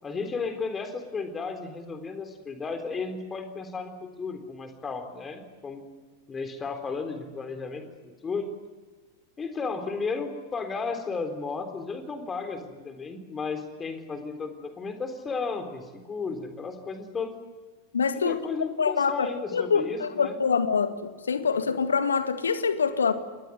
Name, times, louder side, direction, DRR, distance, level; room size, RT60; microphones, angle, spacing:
voice 1, 0.0-5.8 6.3-8.5 9.4-17.3 18.1-20.4, left 4 dB, 20° left, 3.8 m, -34 dB
voice 2, 17.9-18.4 18.8-20.9 21.3-23.1, left 5 dB, 70° left, 1.9 m, -25 dB
28.0 x 21.5 x 9.6 m
figure-of-eight pair, 90°, 0 cm